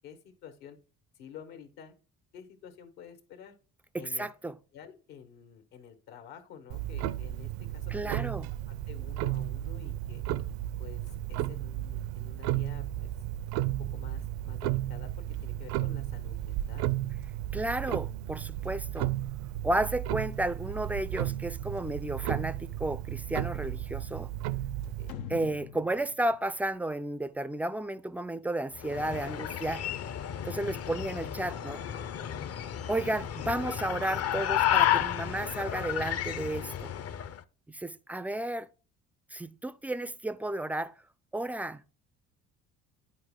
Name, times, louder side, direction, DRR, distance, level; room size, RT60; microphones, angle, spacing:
voice 1, 0.0-0.8 1.1-1.9 2.3-3.5 4.0-4.3 4.7-8.3 8.7-10.2 10.8-13.1 13.7-15.1 15.4-16.9 24.8-25.2, left 8 dB, 75° left, 1.6 m, -50 dB
voice 2, 3.9-4.6 7.9-8.5 17.5-19.1 19.6-24.3 25.3-29.9 30.5-31.8 32.9-36.9 37.7-38.7 39.3-40.9 41.3-41.8, right 1 dB, 5° right, 0.3 m, -33 dB
Clock, 6.7-25.1, right 13 dB, 70° right, 0.6 m, -34 dB
sound 1, 25.1-27.6, left 8 dB, 90° left, 0.8 m, -44 dB
sound 2, 28.7-37.4, left 11 dB, 40° left, 0.6 m, -32 dB
9.6 x 4.4 x 3.7 m
hypercardioid pair, 70°, 38 cm